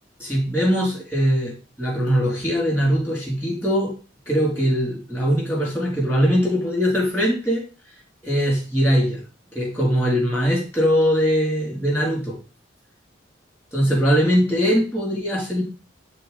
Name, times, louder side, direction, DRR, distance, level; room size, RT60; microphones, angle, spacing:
voice 1, 0.2-3.9 4.3-7.6 8.2-9.2 9.5-12.4 13.7-15.6, equal, 10° left, -3 dB, 3.3 m, -21 dB
10.5 x 3.6 x 4.2 m, 0.36 s
head